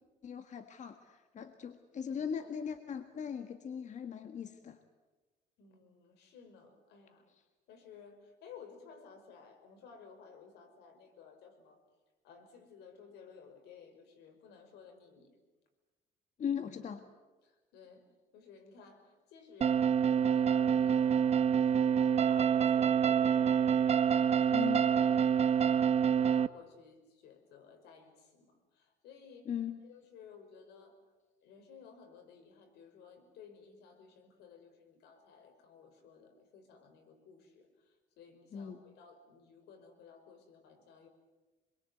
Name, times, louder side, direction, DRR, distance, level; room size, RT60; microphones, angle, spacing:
voice 1, 0.2-4.8 16.4-17.1 24.5-24.9 29.4-29.8 38.5-38.8, left 8 dB, 45° left, 8 dB, 1.7 m, -39 dB
voice 2, 5.6-7.3 7.7-11.8 12.2-15.3 17.4-18.0 18.3-21.2 21.5-23.7 24.1-24.7 25.0-25.2 25.7-29.5 29.8-31.0 31.4-41.1, left 6 dB, 85° left, 6 dB, 5.5 m, -56 dB
sound 1, 19.6-26.5, right 8 dB, 40° right, 0.9 m, -27 dB
26.5 x 22.5 x 8.1 m, 1.2 s
cardioid pair, 110°, 17 cm